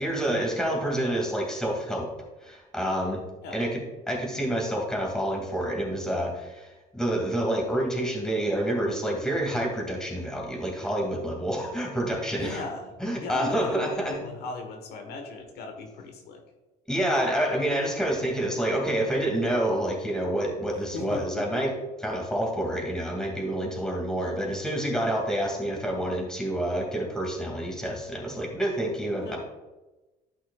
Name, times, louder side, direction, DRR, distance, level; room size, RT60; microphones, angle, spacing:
voice 1, 0.0-2.1 2.4-3.2 3.5-3.8 4.1-12.6 13.0-14.2 16.9-21.7 22.0-29.4, right 1 dB, 5° left, 0 dB, 2.3 m, -28 dB
voice 2, 12.4-16.4 20.9-21.6 29.2-29.4, left 3 dB, 75° left, 4 dB, 1.2 m, -37 dB
11.5 x 5.9 x 2.4 m, 1.1 s
cardioid pair, 110°, 17 cm